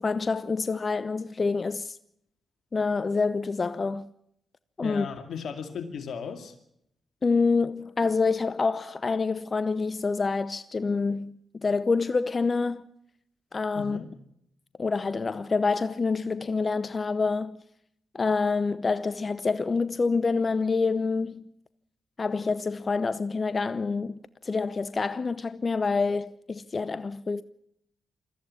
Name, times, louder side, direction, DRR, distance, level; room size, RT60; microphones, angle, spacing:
voice 1, 0.0-2.0 2.7-4.1 4.8-5.1 7.2-12.9 13.5-14.0 14.8-17.6 18.1-21.4 22.2-27.4, left 4 dB, 40° left, 0.7 m, -27 dB
voice 2, 4.8-6.6 13.7-14.1, left 6 dB, 70° left, 2.3 m, -36 dB
22.0 x 14.0 x 9.6 m
supercardioid pair, 55°, 0 cm